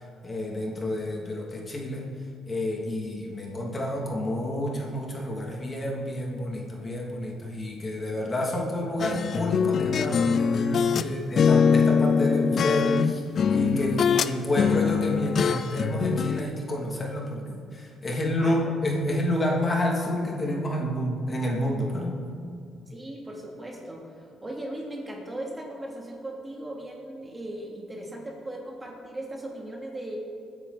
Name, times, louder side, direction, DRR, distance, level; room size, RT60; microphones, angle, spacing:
voice 1, 0.2-2.1 2.5-13.2 13.5-22.2, left 1 dB, 35° left, -1 dB, 2.9 m, -29 dB
sound 1, 9.0-11.1 11.4-14.3 14.6-16.4, left 6 dB, 55° left, 0.5 m, -23 dB
voice 2, 22.9-30.2, right 1 dB, 20° right, -1 dB, 3.1 m, -38 dB
21.5 x 10.0 x 4.3 m, 2.4 s
cardioid pair, 90°, 0 cm